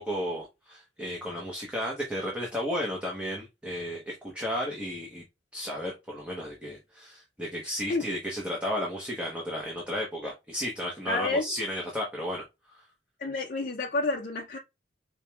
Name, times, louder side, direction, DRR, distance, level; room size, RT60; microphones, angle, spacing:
voice 1, 0.0-5.2 5.5-12.4 12.7-12.8, equal, 5° right, 0.9 m, -33 dB
voice 2, 11.1-11.5 13.2-14.6, left 3 dB, 50° left, 0.5 m, -29 dB
5.0 x 3.0 x 2.3 m
head